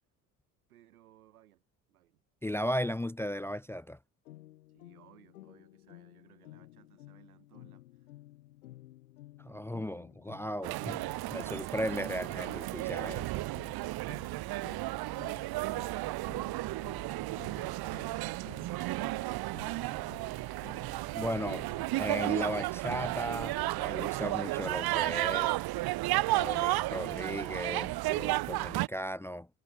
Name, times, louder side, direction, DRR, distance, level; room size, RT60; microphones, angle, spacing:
voice 1, 0.7-1.6 1.9-2.2 4.7-8.1, right 13 dB, 80° right, 6.6 m, -63 dB
voice 2, 2.4-4.0 9.4-11.0 11.3-13.4 21.1-21.7 22.0-25.5 26.3-29.5, equal, 5° left, 0.6 m, -36 dB
sound 1, 4.2-21.7, left 16 dB, 80° left, 4.0 m, -54 dB
sound 2, 10.6-28.9, right 19 dB, 60° right, 1.3 m, -33 dB
Acoustic guitar / Strum, 21.5-24.8, left 6 dB, 35° left, 4.3 m, -60 dB
figure-of-eight pair, 55°, 43 cm